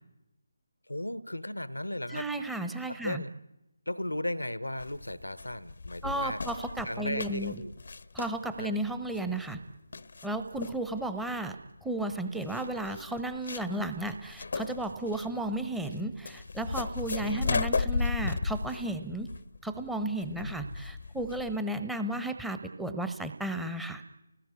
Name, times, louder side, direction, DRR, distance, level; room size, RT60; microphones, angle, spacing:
voice 1, 0.9-2.3 2.9-3.3 3.9-6.4 6.8-7.7 8.6-8.8 17.2-17.5 20.4-20.6, left 1 dB, 80° left, 17 dB, 1.0 m, -36 dB
voice 2, 2.1-3.2 6.0-7.6 8.1-9.6 10.2-11.6 11.8-19.3 19.6-24.0, right 1 dB, 5° right, 8 dB, 1.1 m, -34 dB
sound 1, 4.8-21.6, left 4 dB, 50° left, 0.9 m, -36 dB
29.5 x 19.0 x 9.6 m, 0.97 s
figure-of-eight pair, 150°, 0 cm